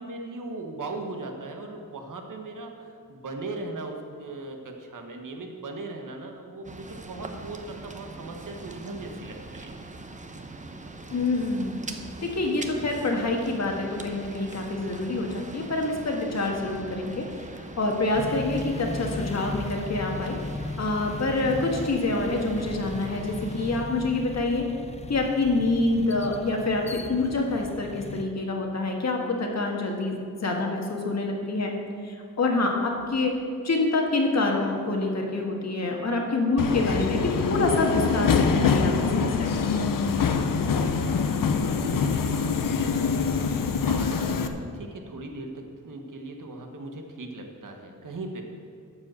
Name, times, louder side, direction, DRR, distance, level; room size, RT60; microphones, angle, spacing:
voice 1, 0.0-9.8 40.0-43.4 43.8-48.4, right 2 dB, 70° right, 3 dB, 1.4 m, -39 dB
sound 1, 6.6-23.8, right 2 dB, 25° right, 0.7 m, -42 dB
voice 2, 11.1-11.8 12.2-20.4 20.8-24.7 25.1-31.7 32.0-33.3 33.6-39.7, left 2 dB, 55° left, 1 dB, 1.6 m, -26 dB
sound 2, 18.1-28.3, left 3 dB, 20° left, 0.4 m, -37 dB
Subway metro underground, 36.6-44.5, left 5 dB, 80° left, 0.7 m, -24 dB
12.5 x 5.0 x 7.7 m, 2.3 s
wide cardioid pair, 140°, 33 cm